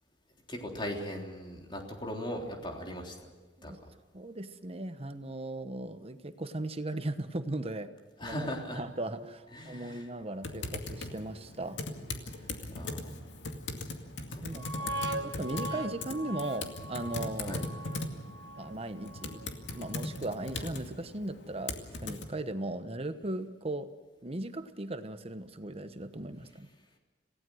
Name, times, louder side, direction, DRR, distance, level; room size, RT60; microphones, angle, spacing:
voice 1, 0.5-3.2 3.6-3.7 8.2-8.8 9.5-10.0 12.7-13.4 14.3-14.4 14.8-14.9 17.4-17.6, equal, 25° left, 1 dB, 3.5 m, -38 dB
voice 2, 4.1-7.9 8.2-8.4 8.7-11.8 14.4-14.7 15.2-17.6 17.9-23.9 24.2-26.7, right 2 dB, 35° right, 10 dB, 1.1 m, -38 dB
sound 1, 8.9-10.1 10.5-10.8 11.3-11.5 12.0-12.2 12.8-12.9 14.5-20.2 20.5-20.6, right 1 dB, 75° right, 1.2 m, -42 dB
Typing, 10.4-22.2, left 2 dB, 80° left, 2.2 m, -39 dB
27.5 x 17.0 x 6.4 m, 1.3 s
head